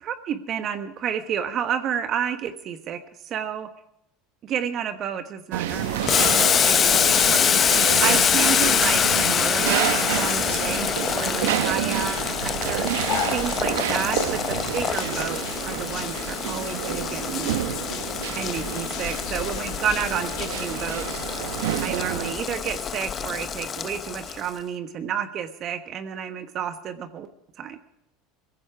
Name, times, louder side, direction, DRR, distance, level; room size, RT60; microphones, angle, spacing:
voice 1, 0.0-3.7 4.4-7.6 8.0-12.3 12.6-12.9 13.3-17.6 18.3-21.1 21.8-27.3 27.6-27.8, right 8 dB, 45° right, 10 dB, 1.4 m, -30 dB
sound 1, 5.5-22.3, right 13 dB, 85° right, 0.8 m, -29 dB
sound 2, 5.7-20.5, left 9 dB, 55° left, 2.6 m, -36 dB
Boiling, 6.1-24.5, left 8 dB, 35° left, 0.8 m, -25 dB
17.5 x 15.5 x 4.7 m, 0.79 s
supercardioid pair, 110°, 0 cm